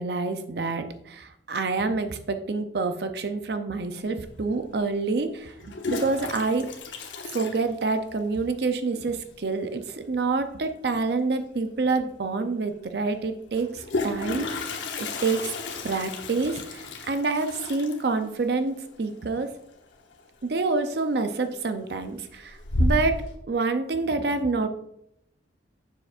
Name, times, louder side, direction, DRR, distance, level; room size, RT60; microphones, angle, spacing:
voice 1, 0.0-6.7 7.2-15.5 15.8-19.5 20.4-24.7, right 3 dB, 60° right, 8 dB, 0.5 m, -27 dB
Toilet flush, 4.2-4.3 5.5-8.3 8.6-8.7 8.9-9.0 9.3-9.7 11.4-11.5 11.9-12.0 13.5-20.2 20.5-20.9 21.4-21.9 22.3-23.3, left 2 dB, 85° left, 0.9 m, -32 dB
7.2 x 6.6 x 2.5 m, 0.76 s
head